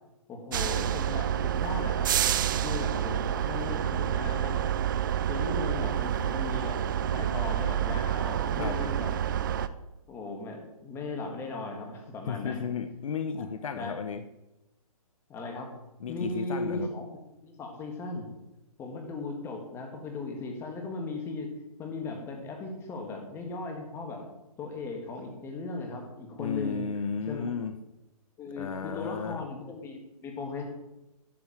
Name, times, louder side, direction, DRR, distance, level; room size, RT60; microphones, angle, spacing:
voice 1, 0.3-2.1 2.6-4.6 5.3-9.1 10.1-12.6 13.4-13.5 13.8-14.0 15.3-15.7 16.1-17.1 17.4-18.3 18.8-21.5 21.8-24.2 24.6-26.8 27.3-27.5 28.4-30.6, left 3 dB, 15° left, 3 dB, 1.7 m, -37 dB
sound 1, 0.5-9.7, right 10 dB, 35° right, 0.4 m, -28 dB
voice 2, 12.3-14.2 16.0-16.9 26.4-27.8 28.6-29.4, left 6 dB, 60° left, 9 dB, 0.9 m, -34 dB
12.0 x 4.8 x 7.2 m, 0.96 s
hypercardioid pair, 160°, 19 cm